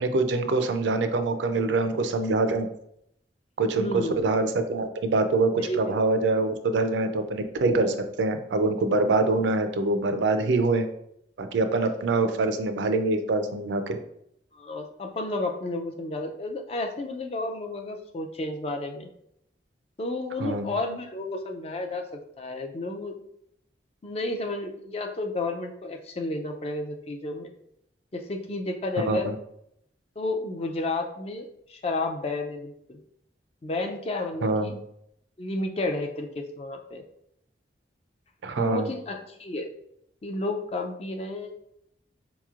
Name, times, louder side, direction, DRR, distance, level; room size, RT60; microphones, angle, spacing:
voice 1, 0.0-2.7 3.6-10.9 11.4-14.0 20.4-20.7 29.1-29.3 34.4-34.7 38.4-38.9, right 3 dB, 80° right, 8 dB, 0.4 m, -25 dB
voice 2, 3.8-4.2 5.5-5.8 14.5-19.1 20.0-22.0 22.4-23.1 24.0-27.5 28.1-29.3 30.2-33.0 33.6-34.7 35.4-37.0 38.6-39.7 40.2-41.5, left 2 dB, 35° left, 4 dB, 0.4 m, -31 dB
4.1 x 3.0 x 2.4 m, 0.74 s
head